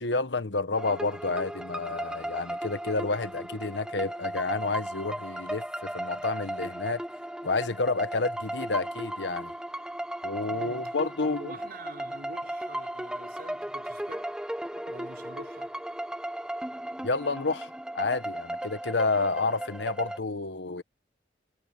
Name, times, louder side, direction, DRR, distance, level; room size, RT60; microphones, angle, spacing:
voice 1, 0.0-7.0 7.4-9.5 10.2-11.5 17.0-20.8, left 3 dB, 90° left, 1.4 m, -30 dB
sound 1, 0.8-20.2, right 1 dB, 5° right, 1.3 m, -36 dB
voice 2, 10.5-14.3 14.9-15.7, right 2 dB, 60° right, 5.8 m, -46 dB
head